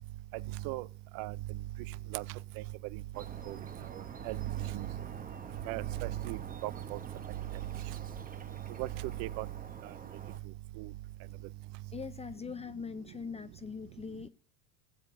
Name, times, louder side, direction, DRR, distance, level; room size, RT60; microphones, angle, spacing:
sound 1, 3.1-10.4, right 5 dB, 15° right, 1.0 m, -47 dB
voice 1, 5.7-7.0 8.8-8.9 9.2-9.5 10.8-10.9, right 18 dB, 45° right, 0.6 m, -36 dB
voice 2, 11.9-14.3, left 6 dB, 15° left, 0.5 m, -41 dB
19.0 x 8.0 x 2.6 m
hypercardioid pair, 100°, 50 cm